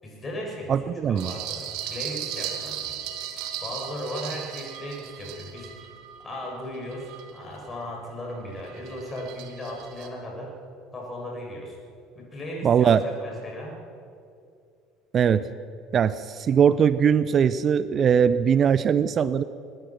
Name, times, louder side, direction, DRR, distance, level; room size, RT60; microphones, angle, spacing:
voice 1, 0.0-0.8 1.1-3.1 3.6-5.7 6.2-10.5 10.9-11.8 12.2-13.8, equal, 25° left, -1 dB, 6.9 m, -36 dB
voice 2, 0.7-1.3 12.6-13.0 15.1-15.5 15.9-19.4, right 7 dB, 35° right, 15 dB, 0.6 m, -20 dB
sound 1, 1.2-7.9 8.3-10.1, right 10 dB, 55° right, 1.9 m, -37 dB
21.5 x 20.0 x 6.1 m, 2.5 s
figure-of-eight pair, 60°, 0 cm